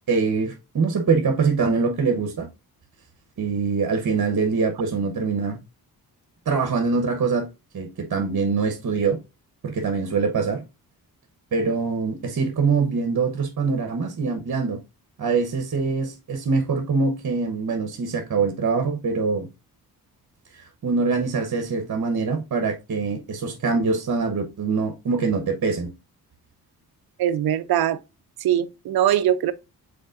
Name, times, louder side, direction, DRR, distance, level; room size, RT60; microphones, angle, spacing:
voice 1, 0.1-2.5 3.4-5.6 6.5-7.5 7.7-9.2 9.6-10.6 11.5-14.8 15.2-19.5 20.5-25.9, right 4 dB, 50° right, 1.0 m, -24 dB
voice 2, 27.2-28.0 28.4-29.5, right 11 dB, 65° right, 0.6 m, -21 dB
5.2 x 4.1 x 2.5 m
cardioid pair, 70°, 40 cm